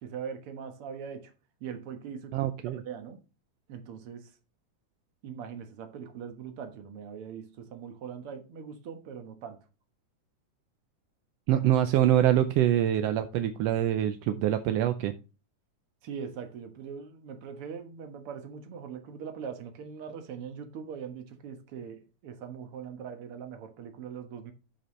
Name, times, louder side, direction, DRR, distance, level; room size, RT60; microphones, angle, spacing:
voice 1, 0.0-1.3 1.6-3.2 3.7-4.4 5.2-9.6 16.0-24.5, right 7 dB, 55° right, 1.9 m, -41 dB
voice 2, 2.3-2.8 11.5-15.1, right 11 dB, 75° right, 1.5 m, -25 dB
12.5 x 5.3 x 3.2 m
omnidirectional pair, 3.4 m